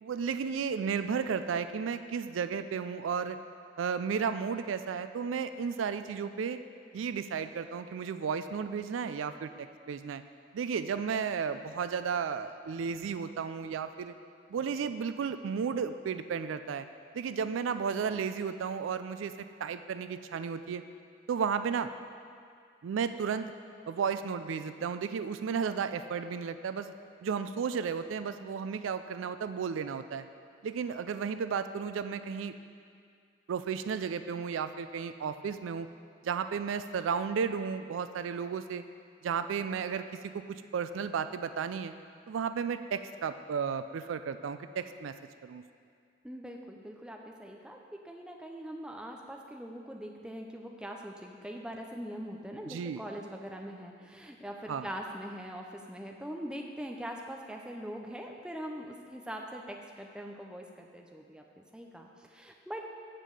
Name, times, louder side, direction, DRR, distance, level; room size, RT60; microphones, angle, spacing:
voice 1, 0.0-3.4 3.8-6.6 6.9-9.5 9.9-10.2 10.5-14.1 14.5-16.9 17.1-19.3 19.6-20.8 21.3-21.9 22.8-23.5 23.9-26.9 27.2-30.3 30.6-32.5 33.5-35.9 36.2-38.8 39.2-40.4 40.7-41.9 42.3-45.1 45.4-45.6 52.7-53.0 54.7-54.9, right 6 dB, 90° right, 11 dB, 0.3 m, -33 dB
voice 2, 46.2-62.9, equal, 5° right, 1 dB, 0.5 m, -42 dB
7.5 x 5.1 x 6.4 m, 2.2 s
head